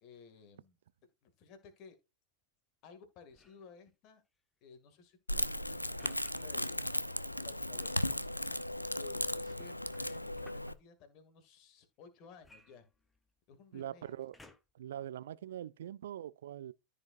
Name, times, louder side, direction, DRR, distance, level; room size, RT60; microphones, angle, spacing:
voice 1, 0.0-0.8 1.2-2.0 2.8-4.2 4.6-8.7 8.9-12.9 13.5-14.1, left 5 dB, 40° left, 2.3 m, -57 dB
sound 1, 3.3-3.7 6.0-6.3 7.7-8.1 9.5-10.7 12.4-13.4 14.3-14.9 15.5-15.6, left 2 dB, 10° left, 1.0 m, -59 dB
Crackle, 5.3-10.7, left 1 dB, 85° left, 0.4 m, -36 dB
voice 2, 13.7-14.4 14.7-16.7, right 11 dB, 60° right, 0.3 m, -43 dB
14.0 x 5.1 x 2.6 m
figure-of-eight pair, 90°, 0 cm